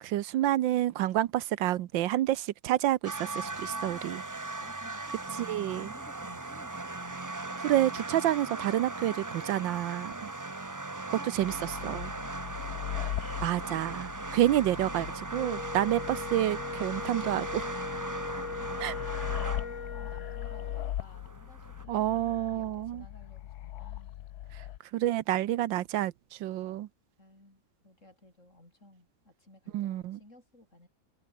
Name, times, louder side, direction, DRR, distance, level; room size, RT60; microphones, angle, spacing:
voice 1, 0.0-4.2 5.5-5.9 7.6-10.3 11.1-11.5 11.8-12.1 12.9-13.1 13.4-17.5 18.8-19.0 21.9-23.0 24.9-26.9 29.7-30.2, right 13 dB, 85° right, 1.5 m, -29 dB
sound 1, 3.0-21.8, right 2 dB, 20° right, 0.4 m, -39 dB
voice 2, 3.9-7.3 10.3-12.3 14.6-14.7 17.3-17.7 19.0-24.2 27.2-30.9, left 1 dB, 40° left, 8.3 m, -56 dB
sound 2, 11.4-24.8, left 13 dB, 65° left, 1.1 m, -40 dB
Wind instrument woodwind instrument, 15.3-20.9, left 5 dB, 85° left, 3.7 m, -40 dB
omnidirectional pair, 2.0 m